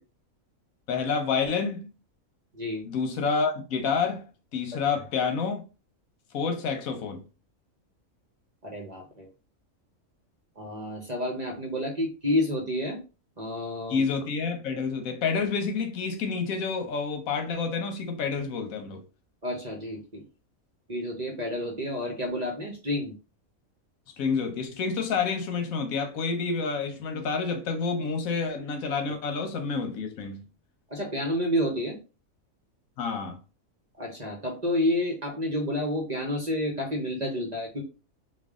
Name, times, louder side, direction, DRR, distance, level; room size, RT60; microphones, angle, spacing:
voice 1, 0.9-1.9 2.8-4.3 4.5-5.6 6.3-7.2 13.9-19.0 24.2-30.4 33.0-33.4, left 5 dB, 80° left, 1.2 m, -28 dB
voice 2, 8.6-9.3 10.6-13.0 13.4-14.1 19.4-20.2 20.9-23.1 30.9-32.0 34.0-37.8, left 1 dB, 40° right, 0.7 m, -30 dB
3.3 x 2.3 x 3.5 m
omnidirectional pair, 1.4 m